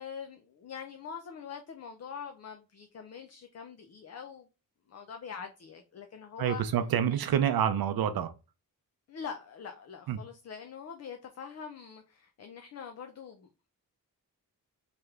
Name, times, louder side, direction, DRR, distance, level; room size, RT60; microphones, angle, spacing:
voice 1, 0.0-4.5 4.9-7.2 9.1-13.7, left 6 dB, 45° left, 0.4 m, -44 dB
voice 2, 6.4-8.3 10.1-10.2, right 9 dB, 80° right, 0.5 m, -27 dB
3.2 x 3.0 x 3.5 m
wide cardioid pair, 180°, 36 cm